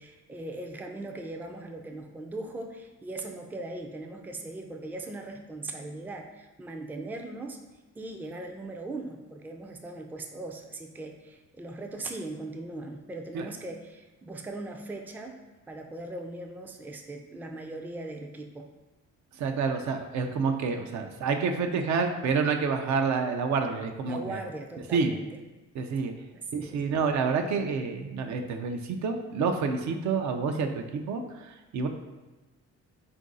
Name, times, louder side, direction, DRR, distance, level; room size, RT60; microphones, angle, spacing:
voice 1, 0.0-7.6 8.0-15.4 15.7-18.7 24.1-25.4 26.3-26.8, right 2 dB, 5° right, 3 dB, 0.3 m, -39 dB
voice 2, 19.4-24.4 24.9-25.1 25.7-26.1 26.5-31.9, right 5 dB, 70° right, 5 dB, 0.5 m, -28 dB
3.9 x 2.6 x 3.7 m, 1.1 s
cardioid pair, 90°, 30 cm